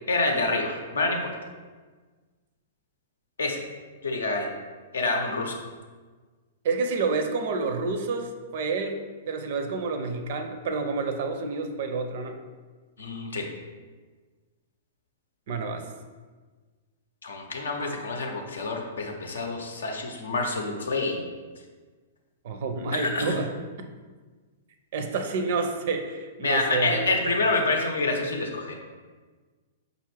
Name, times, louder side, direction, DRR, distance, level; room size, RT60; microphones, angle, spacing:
voice 1, 0.1-1.3 3.4-3.6 4.0-4.5 4.9-5.6 13.0-13.4 17.2-21.2 22.9-23.4 26.4-28.8, left 2 dB, 80° left, 2 dB, 0.6 m, -27 dB
voice 2, 6.6-9.0 9.3-12.4 15.5-15.8 22.4-23.5 24.9-27.3, right 4 dB, 55° right, 6 dB, 0.4 m, -29 dB
5.1 x 2.5 x 3.2 m, 1.4 s
hypercardioid pair, 110°, 0 cm